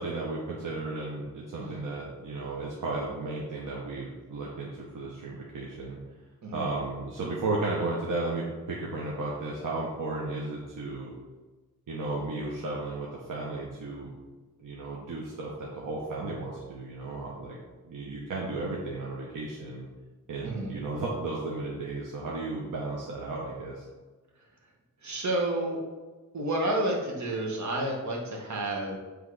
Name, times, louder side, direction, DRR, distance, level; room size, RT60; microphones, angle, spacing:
voice 1, 0.0-6.0 6.5-11.1 11.9-14.1 14.6-17.6 17.8-19.9 20.3-23.9, right 2 dB, 75° right, -3 dB, 1.1 m, -34 dB
voice 2, 20.4-20.7 25.0-25.8 26.3-29.0, right 1 dB, 60° right, -1 dB, 1.6 m, -30 dB
8.1 x 3.4 x 4.9 m, 1.2 s
wide cardioid pair, 150°, 32 cm